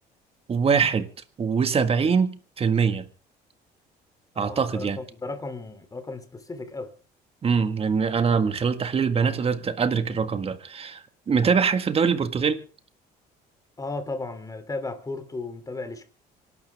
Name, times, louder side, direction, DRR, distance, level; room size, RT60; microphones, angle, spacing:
voice 1, 0.5-1.1 1.4-3.0 4.4-5.0 7.4-12.6, right 6 dB, 35° right, 1.7 m, -23 dB
voice 2, 4.3-6.9 13.8-16.0, left 3 dB, 20° left, 3.0 m, -35 dB
26.5 x 12.0 x 3.6 m
cardioid pair, 110°, 17 cm